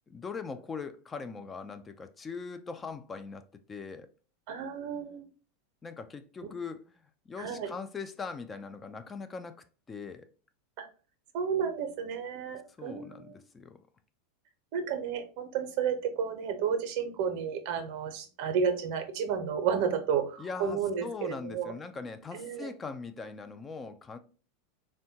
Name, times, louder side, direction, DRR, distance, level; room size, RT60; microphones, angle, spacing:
voice 1, 0.1-4.1 5.8-10.3 12.8-13.8 20.4-24.2, left 5 dB, 20° left, 0.3 m, -41 dB
voice 2, 4.5-5.2 6.4-6.5 7.4-7.7 10.8-10.9 11.3-13.4 14.7-21.7 22.3-22.7, right 7 dB, 60° right, 0.5 m, -32 dB
3.6 x 2.1 x 2.7 m
hypercardioid pair, 95°, 0 cm